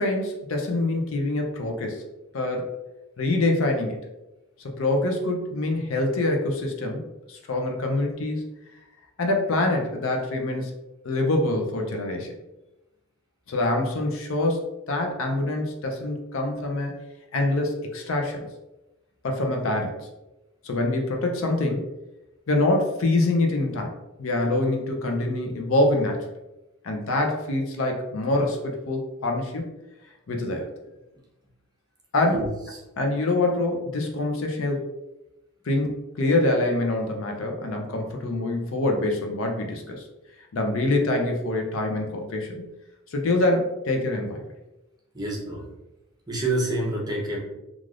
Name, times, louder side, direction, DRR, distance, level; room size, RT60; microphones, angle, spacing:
voice 1, 0.0-2.0 2.3-2.7 3.2-4.0 4.8-8.4 9.2-10.7 11.0-12.3 13.5-14.6 14.9-16.9 17.3-18.5 19.2-20.1 20.6-21.9 22.5-23.9 24.2-26.2 26.8-29.7 30.3-30.7 32.1-32.5 33.0-34.8 35.6-35.9 36.2-40.0 40.5-42.6 43.1-44.4, left 2 dB, 70° left, 3 dB, 0.5 m, -25 dB
voice 2, 45.1-45.6 46.3-47.4, right 2 dB, 20° right, -3 dB, 0.7 m, -27 dB
3.2 x 2.4 x 2.4 m, 0.98 s
head